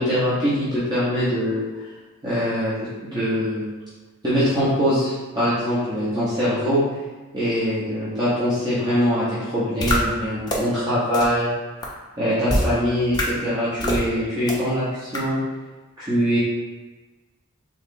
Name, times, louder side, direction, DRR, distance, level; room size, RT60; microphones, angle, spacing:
voice 1, 0.0-1.6 2.2-2.7 3.0-3.6 4.2-6.8 7.3-11.5 12.2-15.4 16.0-16.4, equal, 20° right, -11 dB, 0.9 m, -23 dB
sound 1, 9.8-10.0 10.5-10.6 11.1-11.2 11.8-11.9 12.5-12.7 13.1-13.2 13.8-14.0 14.5-14.6 15.1-15.2, left 1 dB, 20° left, 0.6 m, -22 dB
3.8 x 3.1 x 3.7 m, 1.2 s
head